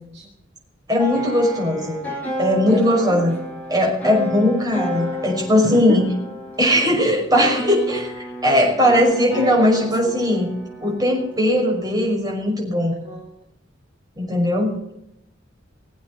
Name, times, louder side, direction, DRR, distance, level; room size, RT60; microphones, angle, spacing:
voice 1, 0.9-2.0 2.4-3.3 3.7-6.1 6.6-10.5 10.8-12.9 14.2-14.8, left 1 dB, 20° right, -1 dB, 5.8 m, -19 dB
sound 1, 1.0-12.1, left 1 dB, 10° left, 4.6 m, -31 dB
voice 2, 2.7-3.2 5.7-6.0 8.8-8.9 9.3-10.1 13.0-13.4, right 1 dB, 35° right, 0 dB, 2.1 m, -32 dB
22.0 x 8.4 x 7.1 m, 0.80 s
head